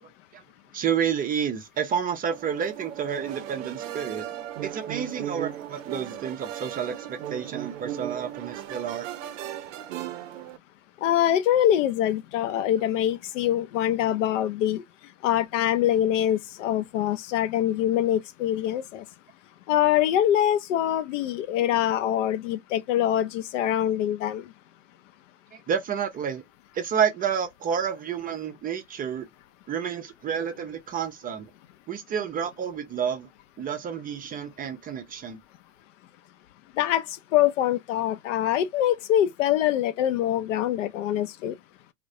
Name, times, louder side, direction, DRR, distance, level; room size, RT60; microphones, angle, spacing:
voice 1, 0.7-4.3 4.6-9.1 25.5-26.4 26.7-29.3 29.7-31.5 31.9-33.3 33.6-35.4, right 7 dB, 25° right, 0.4 m, -30 dB
sound 1, 2.3-10.6, right 12 dB, 70° right, 0.5 m, -37 dB
voice 2, 11.0-14.8 15.2-19.0 19.7-24.4 36.8-37.0 37.3-41.5, left 11 dB, 70° left, 0.5 m, -24 dB
2.3 x 2.1 x 2.6 m
hypercardioid pair, 90°, 39 cm